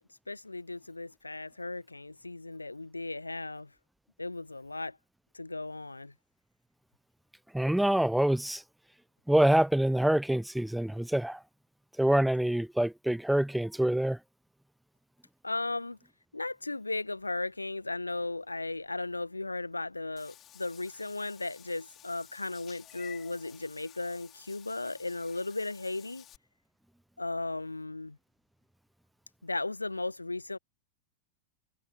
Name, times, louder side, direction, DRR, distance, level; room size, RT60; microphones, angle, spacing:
voice 1, 0.3-3.7 4.2-5.0 5.3-6.1 15.4-16.0 16.3-26.2 27.2-28.2 29.4-30.6, left 2 dB, 80° left, 1.3 m, -36 dB
voice 2, 7.5-8.6 9.3-11.4 12.0-14.2, right 1 dB, ahead, 0.9 m, -26 dB
Meow / Water / Bathtub (filling or washing), 20.2-26.4, left 11 dB, 30° left, 6.2 m, -53 dB
figure-of-eight pair, 90°, 0 cm